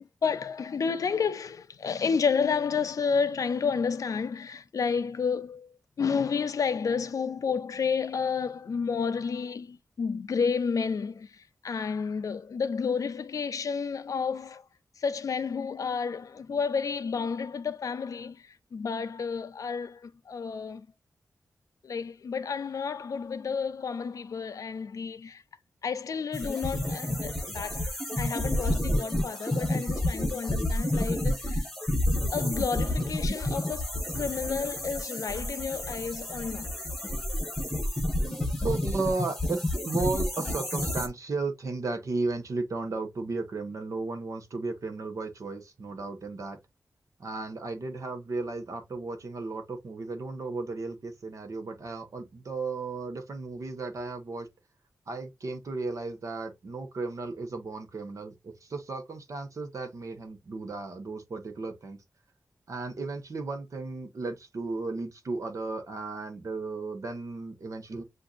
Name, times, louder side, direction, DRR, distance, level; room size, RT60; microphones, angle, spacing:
voice 1, 0.2-14.6 15.0-20.9 21.8-25.4 25.8-27.9 28.2-31.6 32.3-36.7, left 5 dB, 65° left, 0.5 m, -31 dB
sound 1, 26.3-41.1, left 1 dB, 5° left, 1.3 m, -30 dB
voice 2, 38.6-46.6 47.2-54.5 55.1-62.0 62.7-68.0, right 3 dB, 60° right, 1.2 m, -34 dB
7.6 x 2.6 x 2.5 m
wide cardioid pair, 125°, 6 cm